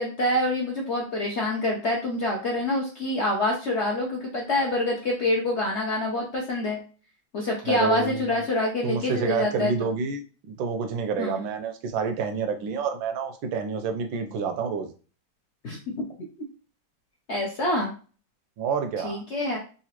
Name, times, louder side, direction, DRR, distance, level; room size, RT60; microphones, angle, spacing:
voice 1, 0.0-6.8 7.3-9.9 11.2-11.4 15.6-16.0 17.3-17.9 19.0-19.6, left 1 dB, 65° left, -2 dB, 0.7 m, -26 dB
voice 2, 7.6-8.2 8.8-14.9 18.6-19.2, right 6 dB, 90° right, 6 dB, 1.4 m, -28 dB
4.0 x 2.5 x 2.9 m, 0.37 s
omnidirectional pair, 2.1 m